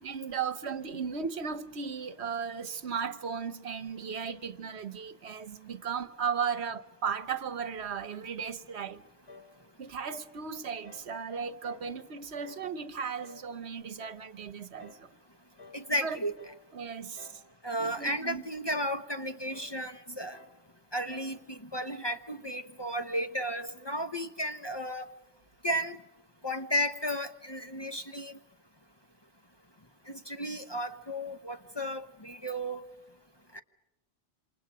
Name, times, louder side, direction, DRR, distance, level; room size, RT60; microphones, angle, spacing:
voice 1, 0.0-9.0 9.8-15.1 16.0-16.2 16.7-17.4 17.8-18.4, right 6 dB, 65° right, 1.2 m, -36 dB
sound 1, 9.3-9.6 10.0-10.3 10.8-11.1 11.6-11.9 12.4-12.7 13.2-13.5 14.0-14.3 14.8-15.1 15.6-15.9 16.4-16.7 17.2-17.5 17.9-18.3 18.7-19.0 19.5-19.8 20.3-20.6 21.1-21.4, left 3 dB, 65° left, 3.1 m, -53 dB
voice 2, 15.7-16.3 17.6-20.4 20.9-25.0 25.6-26.0 26.4-28.4 30.1-32.8 33.5-33.6, equal, 25° left, 0.9 m, -34 dB
28.0 x 27.0 x 5.0 m
omnidirectional pair, 1.2 m